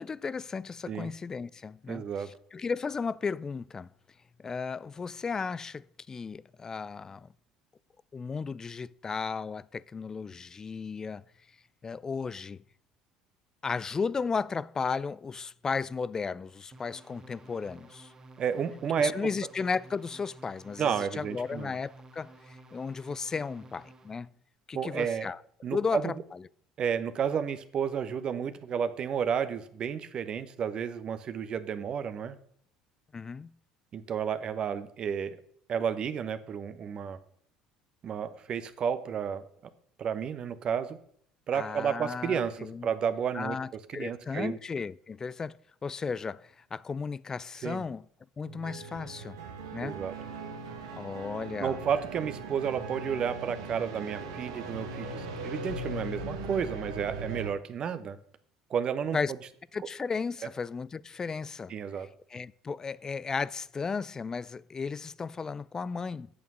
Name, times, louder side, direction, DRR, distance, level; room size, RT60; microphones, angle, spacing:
voice 1, 0.0-3.9 4.4-7.3 8.1-11.2 11.8-12.6 13.6-18.1 19.0-24.3 24.7-25.4 25.7-26.4 33.1-33.5 41.5-42.9 43.3-48.1 48.4-49.4 49.7-50.0 50.9-51.8 59.1-59.3 59.7-61.7 62.3-66.3, left 5 dB, 30° left, 0.4 m, -35 dB
voice 2, 1.9-2.3 18.4-19.2 20.8-21.7 24.7-25.3 25.6-26.1 26.8-32.3 33.9-35.4 35.7-37.2 38.0-39.4 40.0-41.0 41.5-43.6 43.9-44.6 47.6-47.8 49.8-50.1 51.6-58.2 58.7-59.2 61.7-62.1, right 7 dB, 45° right, 0.9 m, -31 dB
sound 1, 16.7-24.3, right 2 dB, 30° right, 1.5 m, -53 dB
sound 2, 48.4-57.5, right 3 dB, 80° right, 1.5 m, -39 dB
8.5 x 7.2 x 6.2 m
hypercardioid pair, 65°, 2 cm